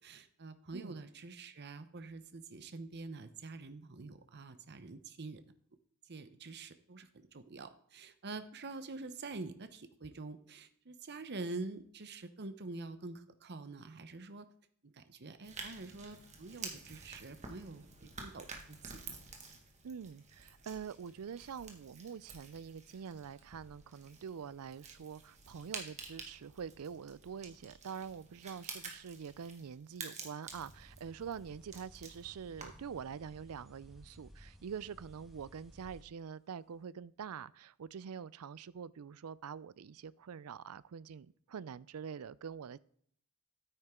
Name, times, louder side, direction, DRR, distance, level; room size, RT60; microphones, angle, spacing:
voice 1, 0.0-5.4 6.1-14.5 14.8-19.2, right 3 dB, 50° right, 11 dB, 0.8 m, -46 dB
sound 1, 15.4-32.9, right 4 dB, 30° right, 1.7 m, -50 dB
voice 2, 19.8-42.8, right 7 dB, 75° right, 20 dB, 0.4 m, -45 dB
sound 2, 30.4-36.0, equal, ahead, 1.5 m, -58 dB
9.6 x 9.2 x 3.7 m, 0.62 s
head